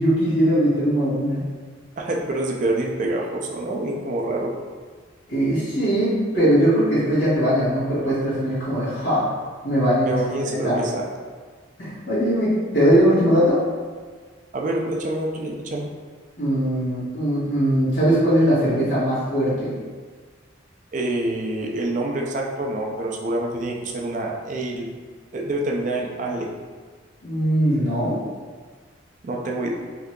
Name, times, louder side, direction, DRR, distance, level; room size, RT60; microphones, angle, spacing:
voice 1, 0.0-1.5 5.3-9.3 9.6-10.1 10.4-10.8 11.8-13.6 16.4-19.7 27.2-28.2, equal, 75° left, -12 dB, 1.5 m, -20 dB
voice 2, 2.0-4.5 10.1-11.1 14.5-15.9 20.9-24.9 25.3-26.5 29.2-29.7, right 2 dB, 40° right, -1 dB, 0.4 m, -26 dB
3.6 x 2.7 x 2.2 m, 1.5 s
head